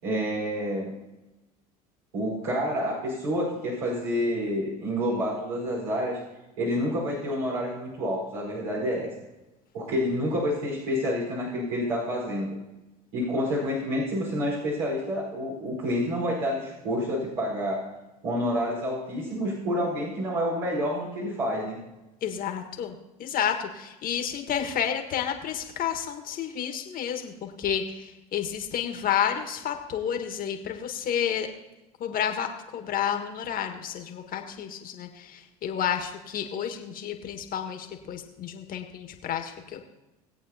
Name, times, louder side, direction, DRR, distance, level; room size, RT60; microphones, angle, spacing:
voice 1, 0.0-0.9 2.1-6.2 6.6-9.1 9.7-12.5 13.1-17.9 18.2-21.8, equal, 75° right, -5 dB, 4.8 m, -28 dB
voice 2, 22.2-31.5 32.0-39.8, left 9 dB, 45° left, 5 dB, 1.7 m, -30 dB
20.5 x 8.4 x 2.9 m, 1.0 s
hypercardioid pair, 75°, 20 cm